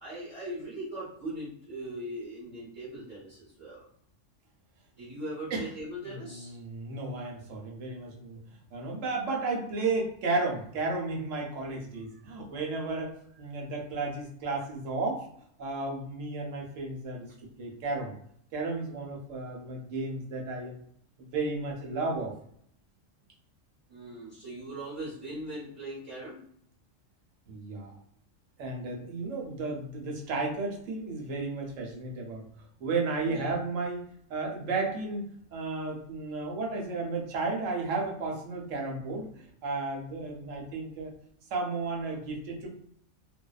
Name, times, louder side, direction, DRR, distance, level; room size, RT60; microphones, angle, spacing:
voice 1, 0.0-3.8 5.0-6.6 23.9-26.4 33.2-33.6, right 1 dB, 35° right, -9 dB, 1.1 m, -40 dB
voice 2, 6.0-8.4 8.7-15.2 15.6-18.1 18.5-20.8 21.2-22.3 27.5-27.9 28.6-34.0 34.3-41.1 41.5-42.7, right 3 dB, 75° right, 1 dB, 1.0 m, -33 dB
2.6 x 2.1 x 2.3 m, 0.66 s
omnidirectional pair, 1.3 m